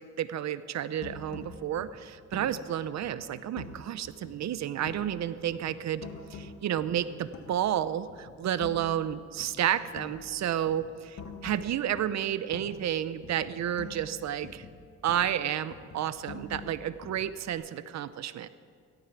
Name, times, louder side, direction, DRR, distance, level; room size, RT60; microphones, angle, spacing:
voice 1, 0.0-10.9 11.4-14.6 15.0-18.5, right 10 dB, 65° right, 14 dB, 0.8 m, -31 dB
sound 1, 1.0-3.9 4.2-5.2 5.5-7.7 8.1-9.1 9.4-13.0 13.2-15.4 15.7-17.5, left 4 dB, 60° left, 2.3 m, -46 dB
16.5 x 13.5 x 6.1 m, 2.1 s
cardioid pair, 90°, 30 cm